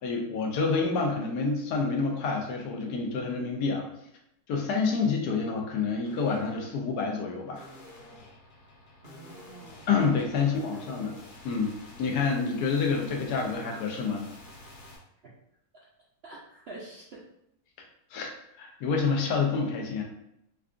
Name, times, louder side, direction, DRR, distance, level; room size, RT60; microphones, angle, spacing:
voice 1, 0.0-3.9 4.5-7.7 9.9-11.2 11.4-14.3 18.1-18.3 18.5-20.0, left 4 dB, 85° left, 1 dB, 1.2 m, -28 dB
sound 1, 1.2-1.4 1.8-2.5 3.1-3.5 4.6-5.2 6.0-15.0, left 1 dB, 60° left, 0.5 m, -50 dB
voice 2, 9.0-9.9 10.4-10.8 15.2-15.3 15.7-15.9 16.2-17.3, right 2 dB, 65° right, -4 dB, 0.6 m, -47 dB
4.7 x 2.3 x 2.4 m, 0.76 s
omnidirectional pair, 1.7 m